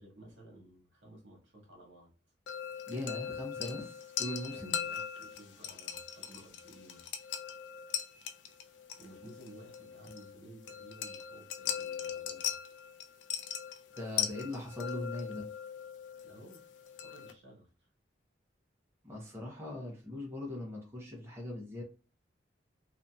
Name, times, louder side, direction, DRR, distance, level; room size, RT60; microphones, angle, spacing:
voice 1, 0.0-2.1 4.5-7.1 9.0-12.6 16.2-16.6 17.0-17.9, right 1 dB, 75° right, -1 dB, 1.3 m, -55 dB
sound 1, 2.5-17.3, left 9 dB, 70° left, 0.4 m, -40 dB
voice 2, 2.9-4.8 14.0-15.5 19.0-21.8, left 1 dB, 15° right, -2 dB, 0.7 m, -40 dB
2.7 x 2.6 x 2.2 m, 0.35 s
head